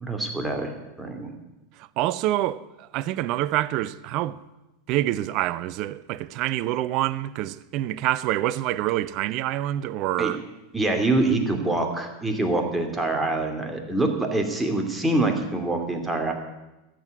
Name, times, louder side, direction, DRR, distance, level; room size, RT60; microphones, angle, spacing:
voice 1, 0.0-0.7 1.0-1.3 10.2-10.3 10.7-16.3, right 2 dB, 10° right, 2.6 m, -25 dB
voice 2, 1.8-4.4 4.9-10.4, right 14 dB, 50° right, 0.6 m, -26 dB
13.5 x 7.7 x 9.4 m
figure-of-eight pair, 85°, 0 cm